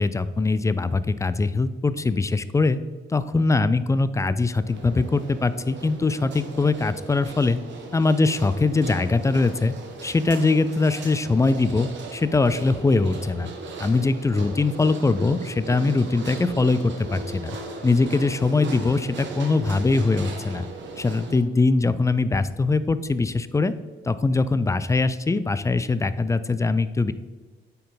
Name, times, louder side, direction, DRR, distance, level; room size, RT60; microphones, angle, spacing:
voice 1, 0.0-2.8 3.1-7.6 7.9-9.7 10.0-13.5 13.8-17.6 17.8-20.7 21.0-23.7 24.1-27.1, left 3 dB, 15° left, 14 dB, 0.4 m, -22 dB
sound 1, 4.6-21.4, right 3 dB, 65° right, 1.3 m, -38 dB
8.4 x 4.6 x 3.9 m, 1.3 s
cardioid pair, 90°, 20 cm